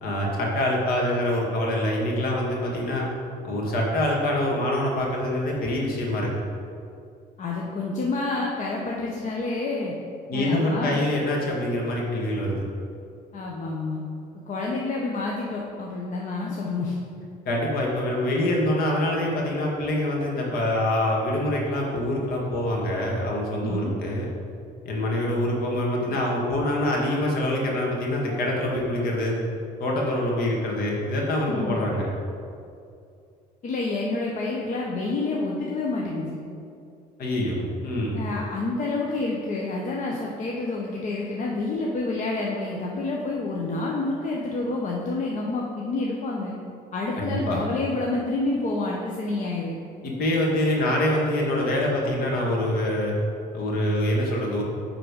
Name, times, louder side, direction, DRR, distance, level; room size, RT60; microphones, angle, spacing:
voice 1, 0.0-3.1 3.4-6.3 10.3-12.6 17.5-24.3 24.8-29.4 29.8-32.1 37.2-38.2 47.2-47.6 50.0-53.2 53.5-54.6, left 1 dB, 60° left, -2 dB, 1.9 m, -25 dB
voice 2, 7.4-9.9 10.3-11.0 13.3-14.0 14.5-17.0 23.6-23.9 31.5-31.8 33.6-36.4 38.1-46.5 46.9-49.8, left 3 dB, 45° left, -2 dB, 0.9 m, -28 dB
9.5 x 3.8 x 5.2 m, 2.5 s
cardioid pair, 110°, 17 cm